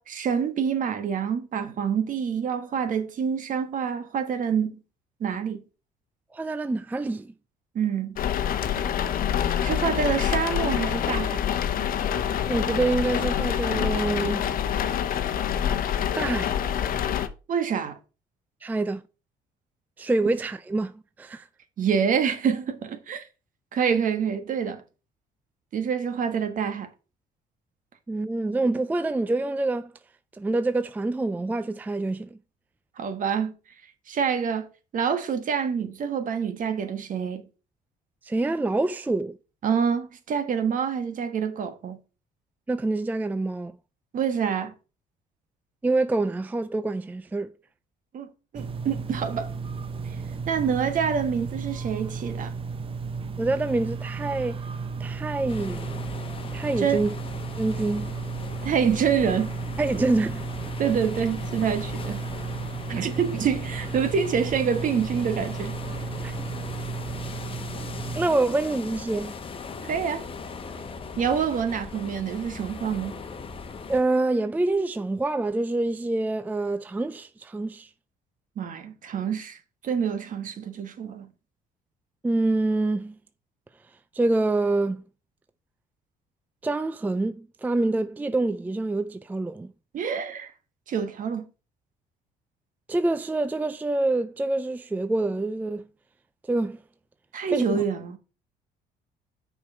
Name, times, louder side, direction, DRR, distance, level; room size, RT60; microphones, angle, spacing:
voice 1, 0.0-4.8 5.2-5.6 7.7-8.2 9.6-11.4 17.5-18.0 21.8-23.3 23.7-24.8 25.7-26.9 33.0-33.5 34.1-37.5 39.6-42.0 44.1-44.7 48.1-48.3 48.5-49.5 50.5-52.5 56.8-57.0 58.6-59.6 59.9-60.0 60.8-62.2 62.9-65.8 69.8-70.3 71.2-73.2 78.6-79.6 79.8-81.3 89.9-90.5 90.9-91.4 97.3-98.2, right 7 dB, 50° right, 1.4 m, -27 dB
voice 2, 6.3-7.3 12.5-14.5 16.2-16.5 18.6-19.0 20.0-21.5 28.1-29.9 30.3-32.4 38.2-39.4 42.7-43.7 45.8-47.5 53.4-54.6 55.0-56.1 56.5-57.1 57.6-58.1 59.8-60.4 60.8-60.9 66.2-66.5 68.2-69.4 73.9-77.9 82.2-83.2 84.1-85.0 86.6-89.7 92.9-95.8 96.4-96.8 97.5-97.8, right 2 dB, 10° right, 0.4 m, -26 dB
sound 1, 8.2-17.3, left 9 dB, 55° left, 0.9 m, -26 dB
sound 2, 48.5-68.3, right 5 dB, 30° right, 0.9 m, -34 dB
sound 3, 55.5-74.0, left 5 dB, 35° left, 1.0 m, -39 dB
6.4 x 5.2 x 5.4 m
cardioid pair, 110°, 17 cm